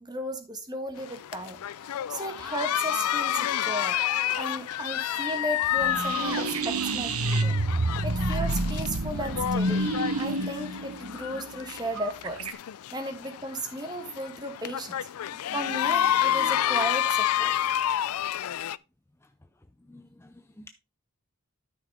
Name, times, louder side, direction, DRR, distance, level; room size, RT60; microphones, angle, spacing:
voice 1, 0.0-4.0 4.3-7.6 8.0-12.4 12.9-15.1 15.5-17.6, right 1 dB, 20° right, 1.5 m, -35 dB
sound 1, 1.0-18.8, left 11 dB, 85° left, 0.4 m, -30 dB
sound 2, 5.8-12.5, right 2 dB, 80° right, 1.1 m, -28 dB
voice 2, 19.9-20.7, left 1 dB, 10° left, 0.4 m, -50 dB
12.5 x 5.7 x 3.5 m
head